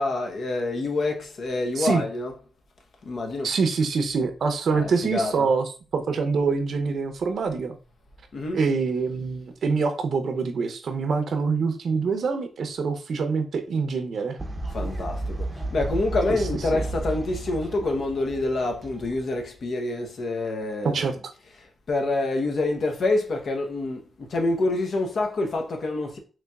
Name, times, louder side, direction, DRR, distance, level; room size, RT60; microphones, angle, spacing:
voice 1, 0.0-2.4 3.0-3.5 4.7-5.5 8.3-8.6 14.7-15.5 15.7-21.2 21.9-26.2, left 2 dB, 65° left, 0.8 m, -27 dB
voice 2, 3.4-7.8 8.5-14.4 16.3-16.4 16.7-16.8 20.9-21.1, right 5 dB, 70° right, 0.6 m, -25 dB
Fowl, 14.4-19.7, right 2 dB, 25° right, 0.6 m, -33 dB
4.0 x 3.0 x 2.3 m
cardioid pair, 85°, 0 cm